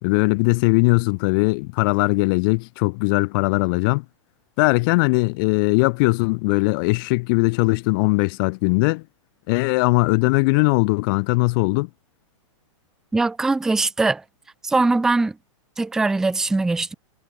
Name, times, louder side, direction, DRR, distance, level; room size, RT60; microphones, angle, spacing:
voice 1, 0.0-4.0 4.6-9.0 9.5-11.9, left 28 dB, 45° left, 2.8 m, -20 dB
voice 2, 13.1-14.2 14.6-15.3 15.8-16.9, right 3 dB, 5° right, 0.3 m, -21 dB
hypercardioid pair, 145°, 17 cm